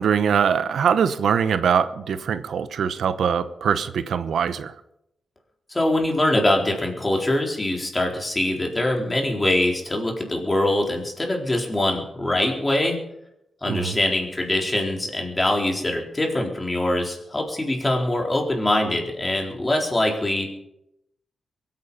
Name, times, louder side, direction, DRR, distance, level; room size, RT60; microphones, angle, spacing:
voice 1, 0.0-4.7 13.7-14.0, right 7 dB, 85° right, 12 dB, 0.9 m, -22 dB
voice 2, 5.7-13.0 13.6-20.5, left 1 dB, 20° left, 1 dB, 4.0 m, -23 dB
23.0 x 9.3 x 5.7 m, 0.81 s
wide cardioid pair, 110°, 0 cm